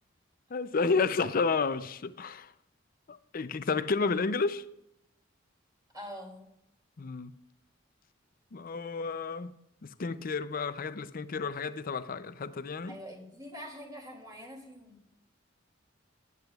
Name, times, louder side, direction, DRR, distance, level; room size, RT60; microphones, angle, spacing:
voice 1, 0.5-2.5 3.1-4.6 7.0-7.3 8.5-9.5 9.8-13.0, left 4 dB, 50° left, 0.5 m, -31 dB
voice 2, 5.9-6.5 12.9-15.0, equal, 20° right, 2.7 m, -44 dB
15.5 x 9.7 x 2.4 m
head